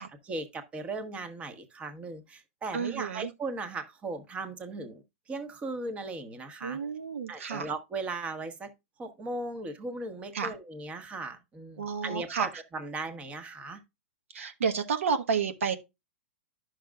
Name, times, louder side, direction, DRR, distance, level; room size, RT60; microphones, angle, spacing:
voice 1, 0.2-6.8 7.3-8.7 9.0-13.8, right 3 dB, 20° right, 1.2 m, -37 dB
voice 2, 2.7-3.3 6.6-7.7 10.3-10.5 11.8-12.6 14.3-15.8, right 6 dB, 90° right, 1.3 m, -31 dB
10.5 x 6.4 x 2.4 m
hypercardioid pair, 140°, 7 cm